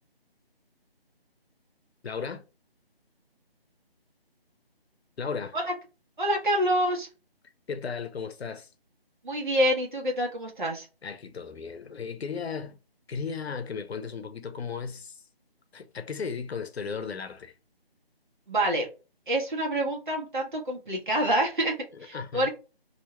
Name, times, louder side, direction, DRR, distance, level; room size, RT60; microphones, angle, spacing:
voice 1, 2.0-2.4 5.2-5.6 7.7-8.7 11.0-12.8 13.1-15.2 15.7-17.5 21.9-22.5, left 5 dB, 90° left, 0.7 m, -35 dB
voice 2, 6.2-7.1 9.2-10.9 18.5-18.9 19.3-21.7 22.0-22.5, right 1 dB, 50° right, 1.2 m, -27 dB
2.7 x 2.2 x 4.1 m
figure-of-eight pair, 175°, 31 cm